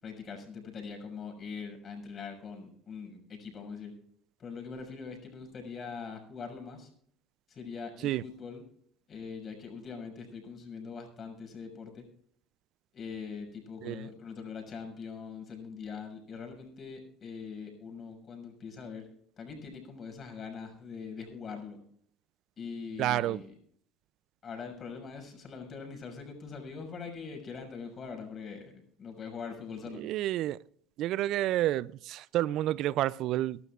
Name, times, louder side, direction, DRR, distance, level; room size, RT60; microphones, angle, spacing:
voice 1, 0.0-3.9 4.4-6.9 7.5-8.6 9.1-12.0 12.9-19.1 19.4-21.8 22.6-23.5 24.4-30.0, left 5 dB, 40° left, 6.5 m, -42 dB
voice 2, 23.0-23.4 29.9-30.6 31.0-33.6, right 14 dB, 65° right, 0.4 m, -29 dB
23.5 x 12.5 x 2.5 m
supercardioid pair, 80°, 0 cm